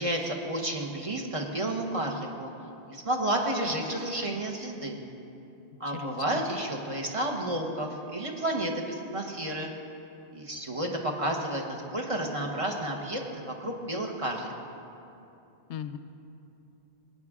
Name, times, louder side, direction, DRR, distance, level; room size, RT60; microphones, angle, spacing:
voice 1, 0.0-2.5 2.9-5.0 5.8-9.7 10.3-14.5, right 1 dB, 30° right, 1 dB, 1.1 m, -31 dB
voice 2, 5.9-6.4 15.7-16.0, left 9 dB, 90° left, 10 dB, 0.9 m, -38 dB
18.5 x 9.7 x 3.6 m, 2.8 s
omnidirectional pair, 1.1 m